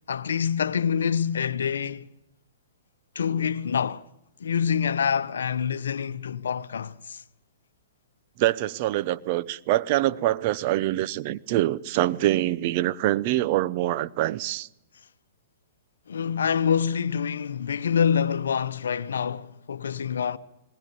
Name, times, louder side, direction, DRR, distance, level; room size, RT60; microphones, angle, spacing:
voice 1, 0.1-2.1 3.1-4.0 4.4-7.2 16.1-20.4, left 7 dB, 75° left, 0.8 m, -26 dB
voice 2, 8.4-14.7, right 15 dB, 45° right, 0.7 m, -25 dB
20.0 x 20.0 x 6.8 m
hypercardioid pair, 120°, 0 cm